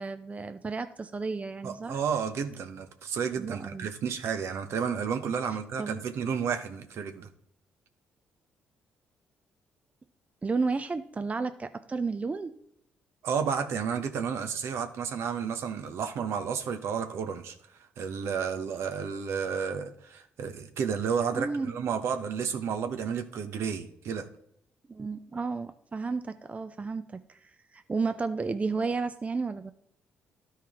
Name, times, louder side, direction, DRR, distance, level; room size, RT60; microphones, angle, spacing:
voice 1, 0.0-2.0 3.4-3.9 5.8-6.0 10.4-12.5 21.3-21.8 24.9-29.7, right 4 dB, 30° right, 11 dB, 0.6 m, -32 dB
voice 2, 1.6-7.3 13.2-17.6 18.0-24.3, right 6 dB, 65° right, 8 dB, 0.9 m, -31 dB
12.5 x 4.5 x 3.6 m, 0.71 s
hypercardioid pair, 55°, 5 cm